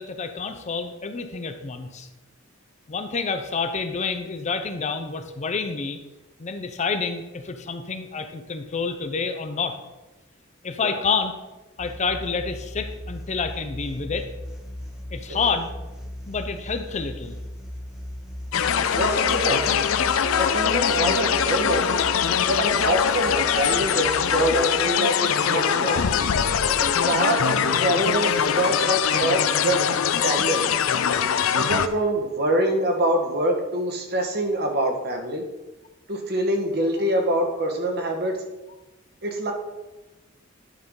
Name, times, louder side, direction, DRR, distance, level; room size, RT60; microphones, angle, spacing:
voice 1, 0.0-2.1 2.9-6.0 6.4-9.8 10.6-11.3 11.8-14.3 15.1-15.7 16.3-17.3 21.8-21.9, left 5 dB, 35° left, 8 dB, 0.5 m, -28 dB
sound 1, 11.8-24.6, equal, 5° right, 0.9 m, -37 dB
sound 2, 18.5-31.9, left 8 dB, 85° left, 0.5 m, -22 dB
voice 2, 18.9-19.9 20.4-21.9 22.5-26.0 26.8-29.8 30.2-30.7 31.5-35.4 36.1-38.4 39.2-39.5, right 1 dB, 50° right, 3 dB, 1.3 m, -25 dB
10.5 x 5.6 x 3.7 m, 1.1 s
head